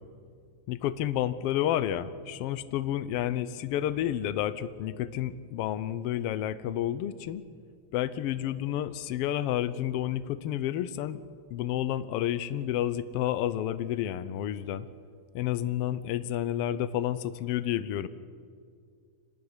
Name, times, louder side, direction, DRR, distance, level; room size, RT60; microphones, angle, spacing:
voice 1, 0.7-7.5 7.9-11.2 11.5-14.9 15.3-18.1, left 11 dB, 70° left, 15 dB, 1.4 m, -30 dB
27.0 x 13.0 x 9.7 m, 2.2 s
omnidirectional pair, 3.4 m